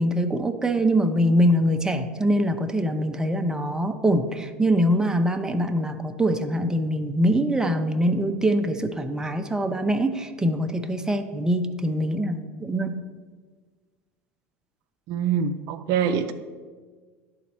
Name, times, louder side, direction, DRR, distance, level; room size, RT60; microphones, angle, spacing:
voice 1, 0.0-12.9, equal, 10° right, 6 dB, 0.5 m, -23 dB
voice 2, 15.1-16.3, right 7 dB, 60° right, 8 dB, 0.4 m, -24 dB
11.0 x 4.0 x 3.0 m, 1.5 s
hypercardioid pair, 85°, 7 cm